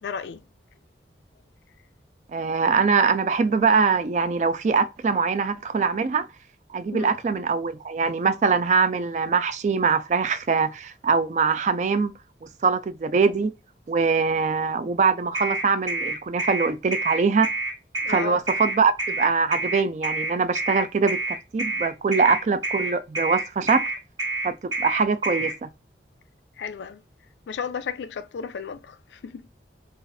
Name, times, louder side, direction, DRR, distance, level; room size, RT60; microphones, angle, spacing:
voice 1, 0.0-0.4 6.9-7.2 18.0-18.4 26.6-27.0 27.5-29.5, left 6 dB, 80° left, 0.4 m, -33 dB
voice 2, 2.3-6.3 6.7-12.1 12.4-13.5 13.9-17.5 18.1-23.9 24.4-25.7, right 5 dB, 40° right, 0.3 m, -23 dB
sound 1, 15.3-25.5, right 2 dB, 20° right, 1.5 m, -28 dB
3.9 x 2.5 x 2.5 m
head